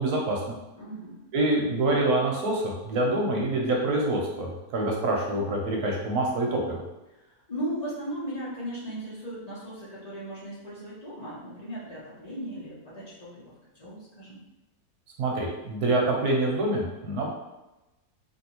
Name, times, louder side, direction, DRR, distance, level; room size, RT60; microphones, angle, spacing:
voice 1, 0.0-0.6 1.3-6.8 15.2-17.3, right 2 dB, 70° right, -1 dB, 1.1 m, -26 dB
voice 2, 0.7-1.1 7.5-14.4, right 1 dB, 40° left, -9 dB, 0.6 m, -37 dB
3.0 x 2.6 x 2.9 m, 1.0 s
omnidirectional pair, 1.8 m